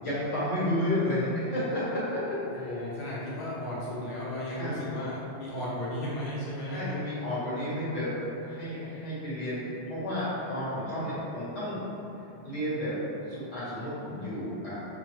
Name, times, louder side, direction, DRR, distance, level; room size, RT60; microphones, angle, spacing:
voice 1, 0.0-2.7 4.5-4.8 6.7-8.1 8.4-11.8 12.4-13.0 13.3-14.7, left 1 dB, 85° left, -11 dB, 1.8 m, -31 dB
voice 2, 2.5-7.0, left 1 dB, 55° left, -8 dB, 0.9 m, -35 dB
5.2 x 2.1 x 3.1 m, 2.9 s
omnidirectional pair, 1.2 m